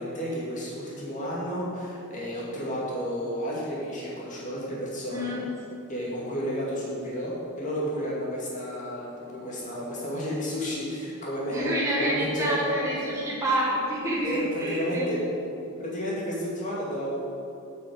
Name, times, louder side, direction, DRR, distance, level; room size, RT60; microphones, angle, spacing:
voice 1, 0.0-5.3 5.9-12.8 14.2-15.2 15.5-17.2, equal, 35° left, -5 dB, 2.3 m, -32 dB
voice 2, 5.1-5.4 11.5-15.1, right 1 dB, 15° right, -6 dB, 1.3 m, -28 dB
8.4 x 6.2 x 6.2 m, 2.8 s
head